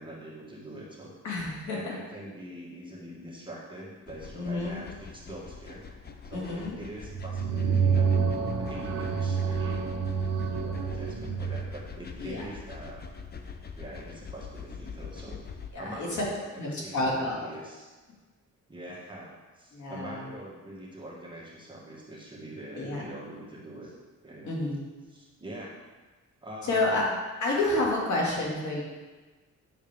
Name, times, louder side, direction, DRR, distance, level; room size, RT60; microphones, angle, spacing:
voice 1, 0.0-1.2 1.7-5.8 6.2-8.1 8.6-9.8 10.5-13.1 13.8-15.4 15.8-17.9 18.7-23.9 24.2-24.6 25.1-25.8 26.4-27.2, right 1 dB, 15° right, -5 dB, 1.7 m, -43 dB
voice 2, 1.2-2.0 4.3-4.8 6.3-6.8 12.2-12.5 15.7-16.2 16.6-17.5 19.7-20.3 22.7-23.0 24.4-24.8 26.6-27.0 27.4-28.8, left 2 dB, 70° left, -3 dB, 2.3 m, -29 dB
sound 1, 4.1-15.7, left 5 dB, 30° left, 0.6 m, -44 dB
sound 2, 7.0-11.7, right 6 dB, 55° right, 0.8 m, -28 dB
8.8 x 6.7 x 3.5 m, 1.3 s
cardioid pair, 110°, 31 cm